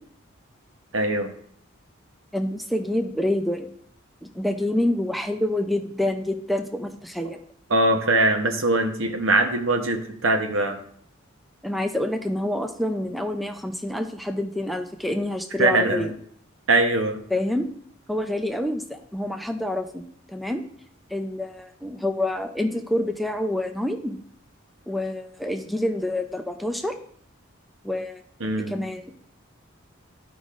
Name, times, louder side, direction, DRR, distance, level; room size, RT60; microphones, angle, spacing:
voice 1, 0.9-1.3 7.7-10.8 15.6-16.1 16.7-17.2 28.4-28.7, right 2 dB, 70° right, 5 dB, 0.9 m, -22 dB
voice 2, 2.3-3.7 4.2-7.4 11.6-16.1 17.3-17.7 18.1-20.6 21.1-24.2 24.9-27.0 27.8-28.2 28.7-29.1, left 1 dB, ahead, 5 dB, 0.5 m, -27 dB
12.5 x 5.1 x 2.5 m, 0.62 s
head